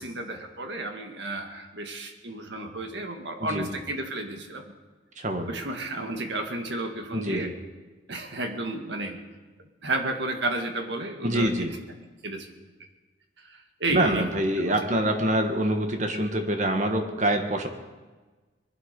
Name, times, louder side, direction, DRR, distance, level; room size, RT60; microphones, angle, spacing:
voice 1, 0.0-4.6 5.5-7.5 8.1-9.2 9.8-11.5 12.2-12.5 13.5-14.2 14.6-14.7, right 2 dB, 60° right, 4 dB, 1.9 m, -32 dB
voice 2, 5.2-5.5 7.1-7.5 11.2-11.7 13.9-17.7, right 1 dB, 35° right, 5 dB, 1.5 m, -25 dB
21.5 x 12.0 x 5.3 m, 1.3 s
head